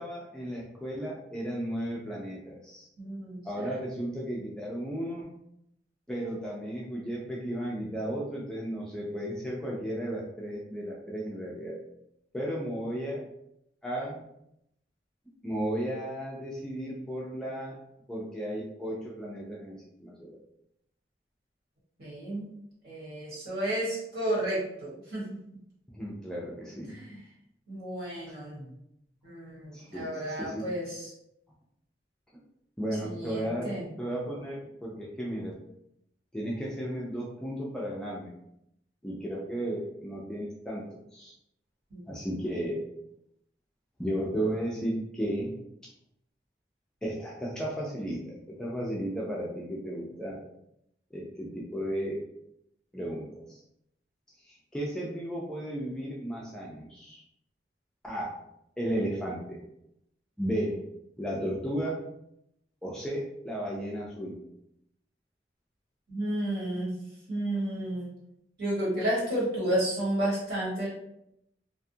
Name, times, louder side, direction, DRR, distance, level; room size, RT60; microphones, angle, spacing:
voice 1, 0.0-2.9 3.4-5.3 6.1-11.8 12.3-13.2 13.8-14.2 15.4-17.8 18.1-20.4 25.9-26.9 29.7-30.6 32.8-33.7 34.0-35.6 36.3-38.3 39.0-40.8 41.1-41.3 42.1-42.8 44.0-45.6 47.0-50.4 51.1-52.2 52.9-53.6 54.5-57.2 58.0-58.4 58.8-59.6 60.4-60.8 61.2-62.0 62.8-64.4, right 1 dB, 5° left, -4 dB, 0.3 m, -34 dB
voice 2, 3.0-3.7 22.0-22.5 22.8-25.4 26.9-27.2 27.7-28.7 29.2-31.1 33.0-33.9 41.9-42.0 66.1-67.0 67.3-68.1 68.6-70.9, right 1 dB, 60° right, -7 dB, 1.4 m, -32 dB
2.5 x 2.3 x 2.6 m, 0.79 s
head